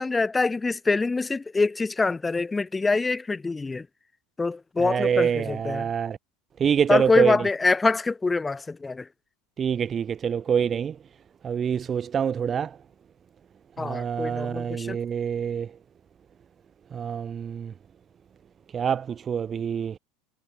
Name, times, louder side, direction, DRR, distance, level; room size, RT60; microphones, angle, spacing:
voice 1, 0.0-3.9 4.4-5.9 6.9-9.1 13.8-15.0, left 3 dB, 15° left, 3.5 m, -25 dB
voice 2, 4.8-6.2 6.6-7.3 9.6-10.9 11.4-12.7 13.8-15.7 16.9-17.7 18.7-19.9, right 7 dB, 30° right, 0.6 m, -26 dB
figure-of-eight pair, 80°, 0 cm